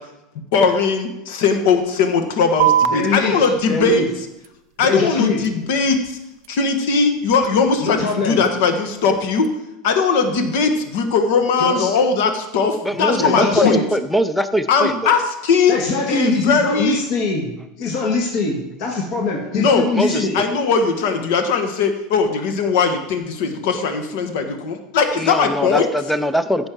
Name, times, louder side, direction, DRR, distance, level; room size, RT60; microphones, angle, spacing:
voice 1, 0.5-4.0 4.8-6.2 6.5-9.5 9.8-13.8 14.7-15.8 16.1-17.0 19.5-19.9 20.1-25.9, left 5 dB, 60° left, 6 dB, 1.5 m, -19 dB
sound 1, 2.6-9.6, right 10 dB, 55° right, 0.4 m, -28 dB
voice 2, 2.9-4.1 4.8-5.4 7.8-8.4 11.6-11.9 13.2-13.8 15.7-20.4, left 3 dB, 40° left, -1 dB, 1.6 m, -22 dB
voice 3, 12.8-15.1 19.9-20.5 25.2-26.7, equal, ahead, 12 dB, 0.4 m, -22 dB
14.0 x 5.4 x 6.1 m, 0.92 s
supercardioid pair, 180°, 0 cm